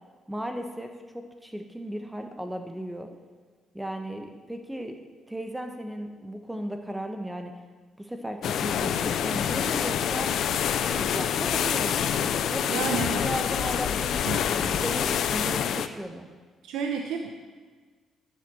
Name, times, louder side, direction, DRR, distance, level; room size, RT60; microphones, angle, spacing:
voice 1, 0.3-3.1 3.7-7.5 8.0-10.3 10.9-14.1 14.6-16.3, equal, 5° right, 5 dB, 1.0 m, -36 dB
sound 1, 8.4-15.9, left 9 dB, 70° left, 0.6 m, -26 dB
voice 2, 12.7-13.3 14.2-14.4 16.6-17.3, right 6 dB, 90° right, 4 dB, 0.8 m, -31 dB
10.5 x 7.9 x 6.9 m, 1.5 s
cardioid pair, 90°, 0 cm